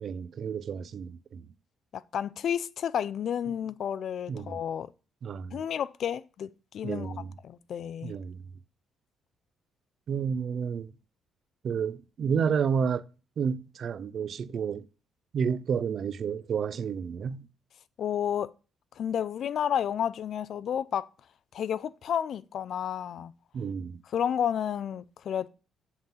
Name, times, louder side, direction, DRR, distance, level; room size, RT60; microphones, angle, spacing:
voice 1, 0.0-1.5 4.3-4.6 5.2-5.6 6.8-7.3 8.0-8.4 10.1-10.9 11.6-13.0 13.4-14.9 15.3-17.5 23.5-24.0, right 6 dB, 55° right, 0.4 m, -30 dB
voice 2, 1.9-4.9 5.5-7.1 7.4-8.2 18.0-18.5 19.0-21.1 21.5-23.3 24.1-25.5, left 9 dB, 60° left, 0.4 m, -31 dB
7.8 x 3.8 x 5.7 m
cardioid pair, 105°, 0 cm